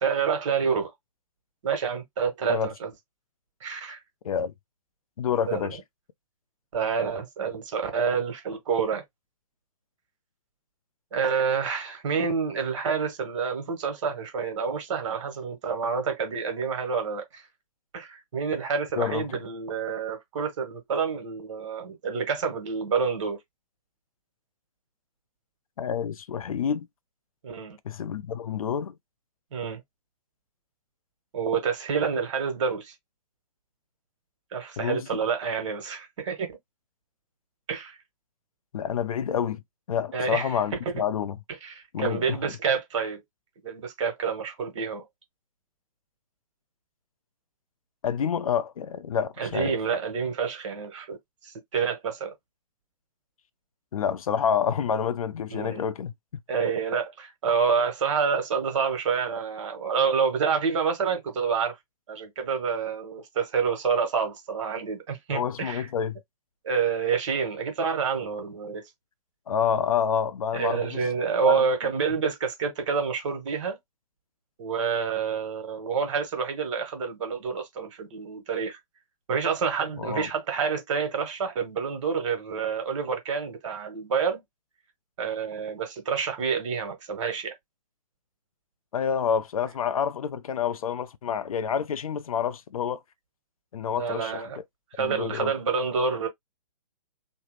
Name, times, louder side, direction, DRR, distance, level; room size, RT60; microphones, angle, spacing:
voice 1, 0.0-0.9 1.6-2.9 3.6-4.0 5.5-5.8 6.7-9.0 11.1-17.4 17.9-23.4 27.4-27.8 29.5-29.8 31.3-32.9 34.5-36.5 37.7-38.0 40.1-40.5 41.6-43.2 43.6-45.0 49.4-51.2 51.4-52.3 55.5-55.9 56.5-61.8 62.1-65.9 66.6-68.8 70.5-73.8 74.6-78.8 79.3-84.4 85.2-87.5 93.9-94.6 95.0-96.3, right 6 dB, 50° right, 1.3 m, -28 dB
voice 2, 5.2-5.8 19.0-19.2 25.8-26.9 27.8-28.9 34.8-35.1 38.7-39.6 39.9-41.4 41.9-42.4 48.0-49.7 53.9-56.1 65.3-66.2 69.5-71.0 71.4-71.6 80.0-80.3 88.9-93.0 93.7-94.6 95.0-95.5, left 7 dB, 65° left, 0.5 m, -28 dB
3.2 x 2.0 x 3.1 m
figure-of-eight pair, 130°, 20 cm